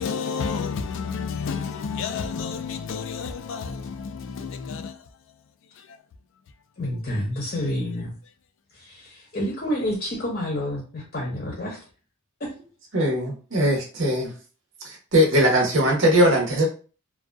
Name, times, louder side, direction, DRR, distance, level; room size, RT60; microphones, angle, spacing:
voice 1, 0.0-3.7 4.4-4.8, left 6 dB, 60° left, 0.3 m, -30 dB
voice 2, 6.8-8.1 8.7-11.8 12.4-12.5, left 1 dB, 40° left, 0.7 m, -29 dB
voice 3, 12.9-14.3 14.8-16.7, equal, 60° right, 0.8 m, -20 dB
2.6 x 2.3 x 2.2 m
head